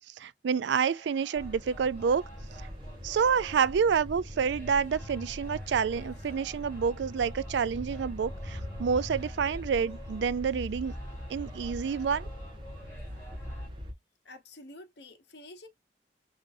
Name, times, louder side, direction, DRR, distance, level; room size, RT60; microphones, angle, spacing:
voice 1, 0.2-2.2 3.0-10.9 11.3-12.3, right 6 dB, 75° right, 0.3 m, -28 dB
sound 1, 0.8-13.7, equal, 15° left, 2.4 m, -53 dB
sound 2, 1.3-13.9, equal, 25° right, 1.2 m, -41 dB
voice 2, 14.2-15.7, left 1 dB, 70° left, 1.1 m, -49 dB
5.2 x 3.3 x 2.6 m
head